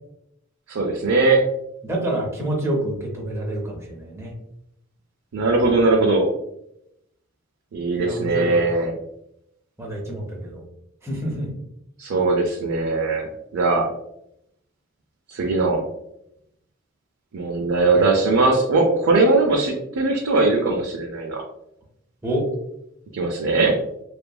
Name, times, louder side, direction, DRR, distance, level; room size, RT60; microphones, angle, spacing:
voice 1, 0.7-1.4 5.3-6.3 7.7-8.9 12.0-13.9 15.3-15.9 17.3-21.4 23.1-23.8, right 3 dB, 80° right, -1 dB, 0.4 m, -20 dB
voice 2, 1.8-4.3 8.0-8.9 9.8-10.6 11.0-11.5 17.9-18.1 22.2-22.5, right 1 dB, 15° right, -1 dB, 0.6 m, -27 dB
2.8 x 2.4 x 2.3 m, 0.79 s
head